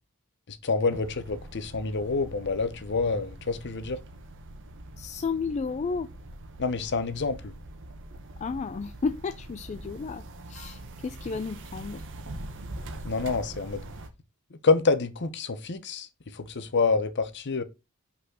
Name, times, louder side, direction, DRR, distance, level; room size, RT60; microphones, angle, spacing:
voice 1, 0.5-4.0 6.6-7.5 13.0-13.8 14.5-17.6, left 4 dB, 55° left, 0.9 m, -27 dB
sound 1, 0.9-14.1, right 1 dB, 60° right, 1.0 m, -43 dB
voice 2, 5.0-6.1 8.4-12.0, left 4 dB, 30° left, 0.3 m, -32 dB
5.5 x 4.1 x 6.2 m
head